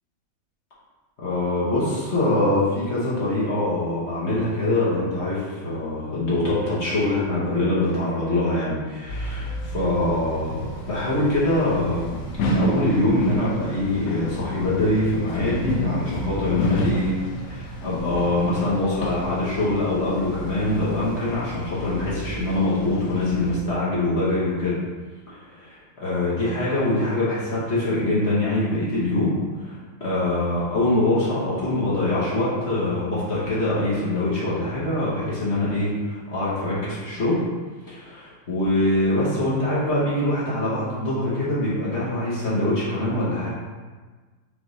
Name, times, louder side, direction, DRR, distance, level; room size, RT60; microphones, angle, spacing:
voice 1, 1.2-17.2 17.5-24.8 25.3-25.4 26.0-37.4 37.9-43.5, left 1 dB, 45° left, -8 dB, 1.1 m, -24 dB
sound 1, 9.1-23.5, equal, 75° left, 0.8 m, -31 dB
5.2 x 2.6 x 3.1 m, 1.4 s
omnidirectional pair, 2.0 m